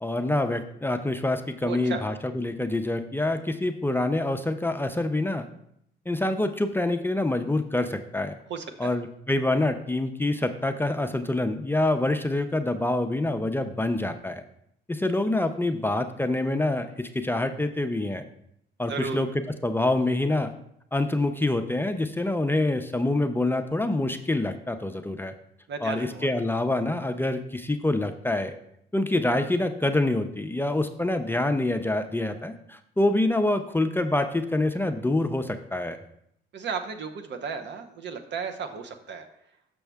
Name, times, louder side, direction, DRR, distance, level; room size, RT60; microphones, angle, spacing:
voice 1, 0.0-5.5 6.1-8.3 8.8-14.4 14.9-18.2 18.8-19.3 19.6-20.5 20.9-25.3 25.8-28.5 28.9-36.0, left 2 dB, 10° left, 7 dB, 0.4 m, -26 dB
voice 2, 1.6-2.0 8.5-9.0 18.9-19.2 25.7-26.3 36.5-39.3, right 5 dB, 65° right, 7 dB, 0.8 m, -34 dB
6.4 x 6.0 x 3.4 m, 0.73 s
cardioid pair, 90°, 20 cm